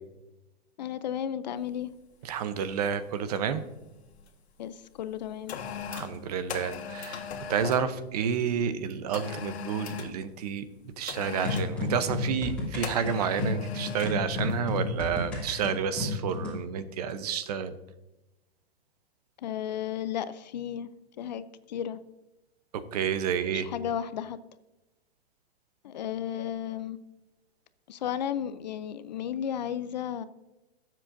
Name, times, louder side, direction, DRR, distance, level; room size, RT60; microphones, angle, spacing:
voice 1, 0.8-1.9 4.6-5.6 19.4-20.9 21.2-22.0 23.5-24.4 25.8-27.0 27.9-30.2, left 9 dB, 45° left, 14 dB, 0.4 m, -33 dB
sound 1, 1.7-1.9 2.6-2.9 3.1-4.3 5.0-7.9 9.1-10.2 11.1-11.8 12.8-14.2 14.5-14.7, left 7 dB, 85° left, 1.5 m, -39 dB
voice 2, 2.2-3.6 5.9-7.2 7.5-10.7 11.0-17.7 22.7-23.7, right 7 dB, 40° right, 12 dB, 0.7 m, -30 dB
sound 2, 11.4-16.6, left 3 dB, 5° left, 2.7 m, -32 dB
19.0 x 7.5 x 2.6 m, 1.0 s
hypercardioid pair, 160°, 32 cm